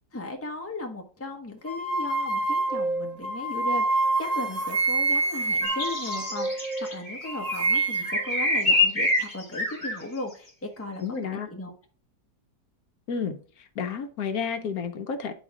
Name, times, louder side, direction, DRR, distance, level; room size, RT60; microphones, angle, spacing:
voice 1, 0.1-11.0 11.3-11.7, left 2 dB, 10° left, 3 dB, 1.0 m, -37 dB
sound 1, 1.7-6.9 7.3-8.3, right 3 dB, 50° right, 1.9 m, -27 dB
sound 2, 5.6-10.0, left 2 dB, 30° left, 2.3 m, -26 dB
voice 2, 11.0-11.5 13.1-15.3, left 6 dB, 70° left, 8 dB, 1.2 m, -31 dB
10.0 x 4.3 x 3.6 m, 0.43 s
omnidirectional pair, 1.7 m